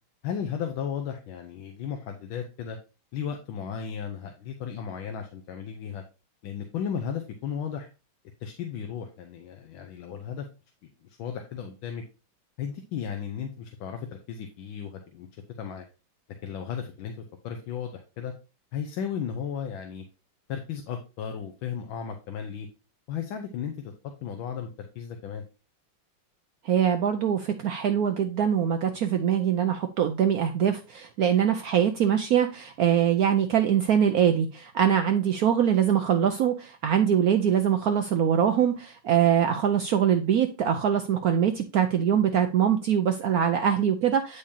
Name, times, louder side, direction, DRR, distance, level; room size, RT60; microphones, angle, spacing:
voice 1, 0.2-2.8 3.1-6.0 6.4-7.9 8.4-10.4 10.8-12.0 12.6-15.8 16.4-17.2 17.4-18.3 18.7-20.0 20.5-22.7 23.1-23.9 24.2-25.4, left 7 dB, 80° left, 5 dB, 1.5 m, -35 dB
voice 2, 26.6-44.4, right 9 dB, 80° right, 7 dB, 0.8 m, -23 dB
8.7 x 5.0 x 2.7 m, 0.31 s
omnidirectional pair, 2.2 m